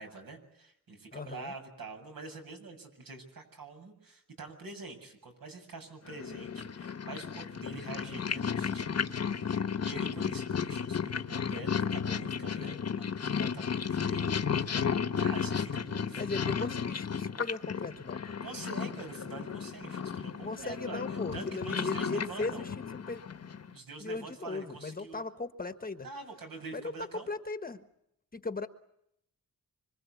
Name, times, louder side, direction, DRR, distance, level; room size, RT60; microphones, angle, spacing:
voice 1, 0.0-14.4 14.7-16.3 18.4-22.6 23.7-25.2 26.0-27.3, right 3 dB, 70° right, 4 dB, 7.6 m, -46 dB
voice 2, 1.1-1.5 16.2-18.3 20.4-22.7 23.1-23.2 24.0-26.1 26.7-27.8 28.3-28.7, left 3 dB, 25° left, 8 dB, 1.3 m, -37 dB
Purr, 6.1-23.7, left 7 dB, 45° left, 1.2 m, -34 dB
26.0 x 26.0 x 8.4 m, 0.79 s
wide cardioid pair, 175°, 36 cm